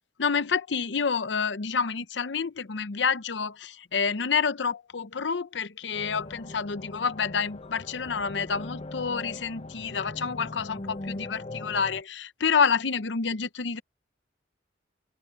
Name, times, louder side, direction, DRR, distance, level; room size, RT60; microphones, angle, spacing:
voice 1, 0.2-13.8, left 5 dB, 80° left, 0.7 m, -28 dB
sound 1, 5.9-12.0, left 2 dB, 35° left, 0.7 m, -40 dB
head